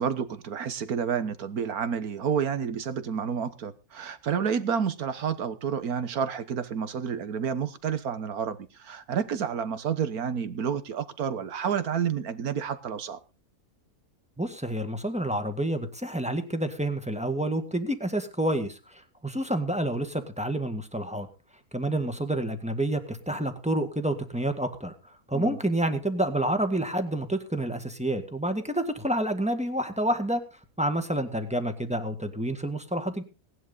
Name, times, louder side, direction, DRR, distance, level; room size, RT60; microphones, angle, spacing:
voice 1, 0.0-13.2 25.3-25.6, right 7 dB, 70° right, 1.7 m, -30 dB
voice 2, 14.4-21.3 21.7-24.9 25.3-30.4 30.8-33.2, right 1 dB, 5° right, 1.7 m, -28 dB
18.0 x 11.0 x 4.1 m
omnidirectional pair, 1.6 m